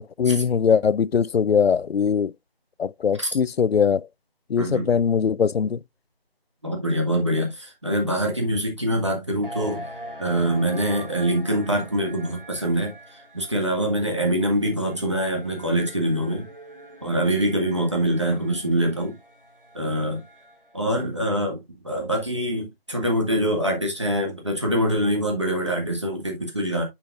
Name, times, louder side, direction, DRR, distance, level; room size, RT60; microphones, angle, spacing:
voice 1, 0.2-2.3 2.8-4.1 4.5-5.8, left 6 dB, 85° left, 0.5 m, -21 dB
voice 2, 4.6-5.0 6.6-9.8 10.2-16.5 17.0-19.2 19.7-20.2 20.7-26.8, equal, 30° right, 1.5 m, -24 dB
sound 1, 9.4-20.8, right 1 dB, 60° right, 2.5 m, -43 dB
8.7 x 5.5 x 2.4 m
figure-of-eight pair, 180°, 30 cm